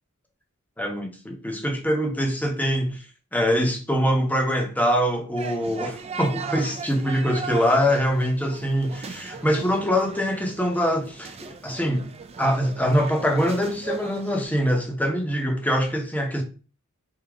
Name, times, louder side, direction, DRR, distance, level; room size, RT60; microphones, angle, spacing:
voice 1, 0.8-3.0 3.3-12.1 12.4-16.4, equal, 5° left, 0.8 m, -24 dB
sound 1, 5.4-14.4, right 5 dB, 30° right, 0.4 m, -37 dB
4.9 x 2.8 x 3.5 m
head